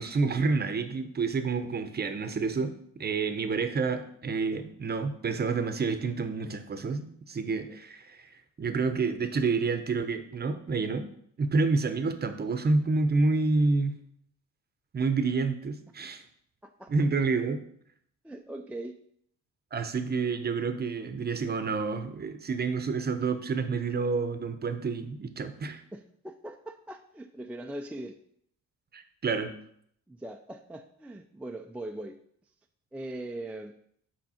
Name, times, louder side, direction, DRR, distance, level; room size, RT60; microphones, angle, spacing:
voice 1, 0.0-2.7 3.0-8.2 8.6-11.1 11.4-14.0 14.9-16.2 16.9-17.6 19.7-25.8 28.9-29.5, right 4 dB, 35° right, 9 dB, 0.7 m, -28 dB
voice 2, 16.6-16.9 18.2-18.9 25.9-28.2 30.1-32.2 32.9-33.7, right 1 dB, 5° right, 4 dB, 0.3 m, -40 dB
6.0 x 4.5 x 4.2 m, 0.67 s
cardioid pair, 90°, 30 cm